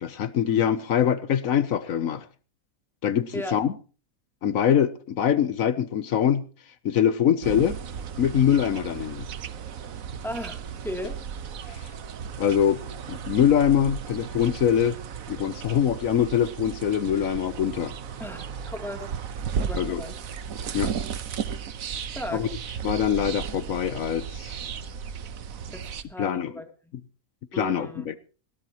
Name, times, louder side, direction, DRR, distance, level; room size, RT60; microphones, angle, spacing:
voice 1, 0.0-2.3 3.0-3.7 4.4-6.4 6.8-7.8 8.2-9.3 11.7-11.8 12.4-12.8 13.1-15.0 15.3-17.9 19.7-20.0 20.7-20.9 22.3-22.5 22.8-24.5 26.2-26.5 27.5-28.2, left 9 dB, 80° left, 1.4 m, -23 dB
sound 1, 7.4-26.0, right 7 dB, 80° right, 1.4 m, -35 dB
voice 2, 10.2-11.4 18.2-19.1 19.6-20.2 22.0-22.5 25.7-26.6 27.5-28.1, equal, ahead, 2.9 m, -36 dB
20.0 x 17.5 x 3.0 m
omnidirectional pair, 1.4 m